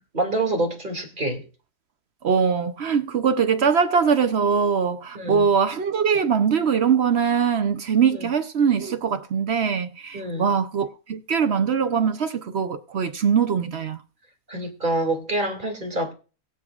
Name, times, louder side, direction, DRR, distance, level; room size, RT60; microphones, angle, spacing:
voice 1, 0.1-1.4 5.1-5.5 8.1-8.3 10.1-10.5 14.5-16.1, right 2 dB, 30° right, 2.7 m, -26 dB
voice 2, 2.2-14.0, right 6 dB, 55° right, 0.8 m, -22 dB
22.0 x 8.0 x 2.4 m
omnidirectional pair, 1.6 m